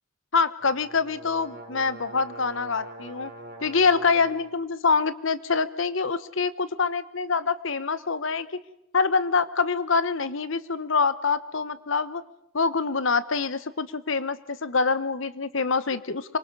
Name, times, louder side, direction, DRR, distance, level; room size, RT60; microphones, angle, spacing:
voice 1, 0.3-3.3 3.6-8.5 8.9-12.2 12.5-16.4, left 4 dB, 65° left, 15 dB, 1.0 m, -25 dB
sound 1, 0.6-4.5, right 2 dB, 45° right, 3.2 m, -43 dB
25.5 x 24.5 x 5.5 m, 0.78 s
head